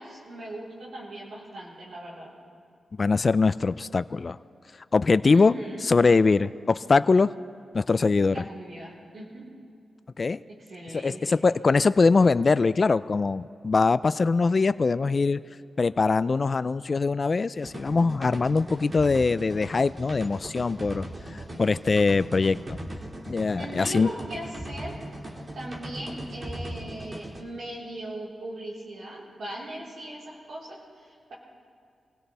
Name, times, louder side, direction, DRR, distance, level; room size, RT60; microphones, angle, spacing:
voice 1, 0.0-2.3 5.3-5.9 8.3-9.5 10.5-11.4 23.6-25.0 25.5-31.3, right 1 dB, 75° right, -6 dB, 4.2 m, -39 dB
voice 2, 3.0-4.4 4.9-5.5 5.8-7.3 7.7-8.4 10.2-10.4 10.9-15.4 15.8-21.1 21.3-22.8 23.3-24.1, left 4 dB, 45° left, 15 dB, 0.4 m, -22 dB
sound 1, 17.6-27.4, right 1 dB, 40° right, 2.2 m, -39 dB
25.0 x 17.0 x 3.5 m, 2.4 s
cardioid pair, 65°, 0 cm